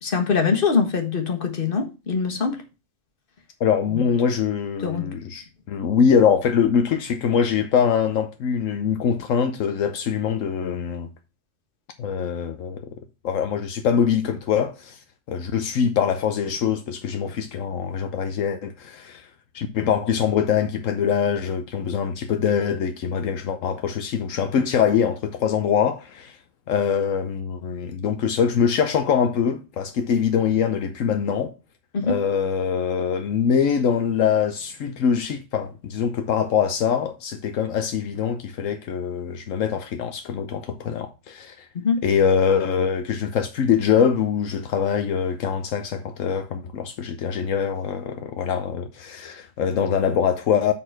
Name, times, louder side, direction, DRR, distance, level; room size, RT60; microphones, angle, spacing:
voice 1, 0.0-2.6 4.8-5.1 31.9-32.2 41.8-42.0, left 5 dB, 45° left, 1.6 m, -23 dB
voice 2, 3.6-11.1 12.0-13.0 13.2-15.0 15.3-19.3 19.5-26.4 26.7-31.5 32.0-41.7 42.0-50.7, left 7 dB, 80° left, 1.1 m, -23 dB
7.3 x 4.3 x 5.7 m
omnidirectional pair, 1.4 m